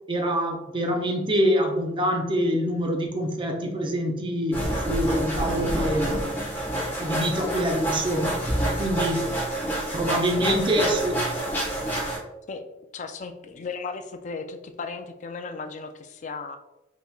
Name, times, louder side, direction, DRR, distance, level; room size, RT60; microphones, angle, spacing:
voice 1, 0.1-4.6 4.8-6.4 7.0-8.4 8.8-9.2 9.9-11.2, equal, 25° right, 3 dB, 0.5 m, -25 dB
sound 1, 4.5-12.2, right 1 dB, 10° left, 1.2 m, -28 dB
voice 2, 12.9-16.6, left 4 dB, 40° left, 7 dB, 0.3 m, -35 dB
5.2 x 3.1 x 2.3 m, 0.96 s
head